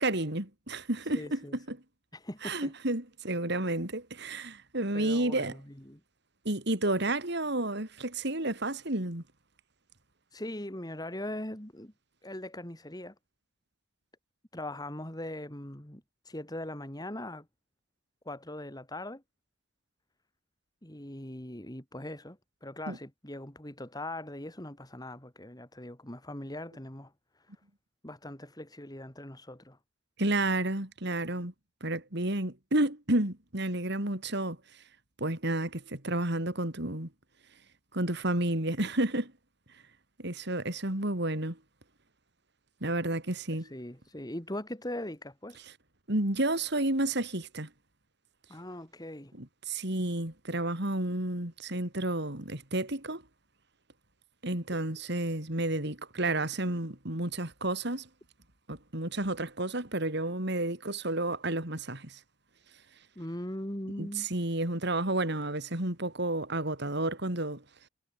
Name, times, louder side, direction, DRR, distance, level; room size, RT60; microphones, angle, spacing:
voice 1, 0.0-1.8 2.4-5.6 6.5-9.2 22.9-23.0 30.2-31.5 31.8-34.8 35.2-37.1 37.9-39.3 40.2-41.6 42.8-43.7 46.1-47.7 49.4-53.2 54.4-58.1 58.7-62.2 64.0-67.6, right 1 dB, 60° right, 3.8 m, -31 dB
voice 2, 1.1-1.5 2.1-2.7 4.9-5.6 5.9-6.0 10.3-11.9 12.2-13.1 14.5-17.4 18.2-19.2 20.8-27.1 28.0-29.8 43.6-45.6 48.5-49.3 63.1-64.3, left 1 dB, 20° left, 3.2 m, -40 dB
head